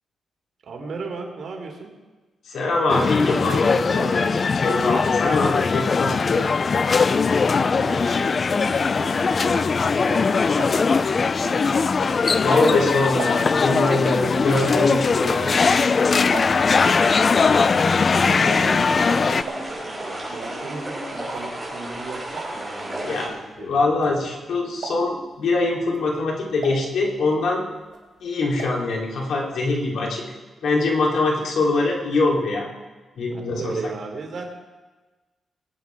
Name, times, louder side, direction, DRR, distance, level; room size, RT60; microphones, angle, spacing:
voice 1, 0.7-2.0 7.5-11.8 16.7-17.5 17.7-24.3 33.2-34.5, right 4 dB, 60° right, 1 dB, 3.1 m, -37 dB
voice 2, 2.5-6.4 12.4-15.6 23.0-27.6 28.2-30.2 30.6-32.7 33.2-33.7, left 3 dB, 80° left, -2 dB, 3.3 m, -23 dB
sound 1, 2.9-19.4, left 5 dB, 40° left, 0.4 m, -20 dB
sound 2, 10.4-12.6 12.9-16.9 17.1-24.4 24.7-25.3 25.8-27.5 27.8-28.9 29.2-29.3 29.5-29.6, right 4 dB, 85° right, 2.8 m, -38 dB
sound 3, 18.3-23.3, right 1 dB, ahead, 5.7 m, -33 dB
21.5 x 8.9 x 4.7 m, 1.2 s
wide cardioid pair, 135°, 0 cm